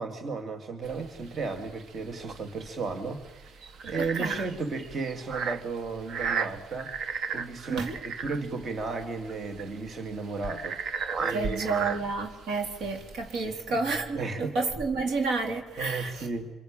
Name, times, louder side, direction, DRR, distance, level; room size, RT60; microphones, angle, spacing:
voice 1, 0.0-6.9 7.3-11.9 13.4-13.6 14.1-14.5 15.8-16.5, right 4 dB, 50° right, 2.4 m, -34 dB
sound 1, 0.8-13.4, right 5 dB, 65° right, 1.3 m, -35 dB
voice 2, 4.0-4.5 7.7-8.0 11.3-16.3, right 3 dB, 80° right, 3.9 m, -30 dB
26.0 x 23.0 x 8.9 m
cardioid pair, 85°, 0 cm